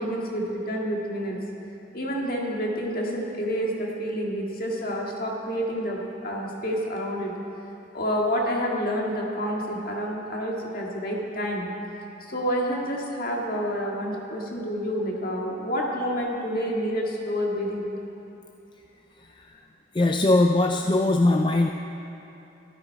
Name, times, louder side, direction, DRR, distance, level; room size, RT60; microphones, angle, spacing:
voice 1, 0.0-1.4 1.9-7.3 7.9-11.7 12.3-17.9, equal, 50° left, -1 dB, 1.9 m, -28 dB
voice 2, 19.9-21.7, left 2 dB, 25° left, 4 dB, 0.4 m, -20 dB
14.0 x 12.5 x 4.6 m, 2.9 s
head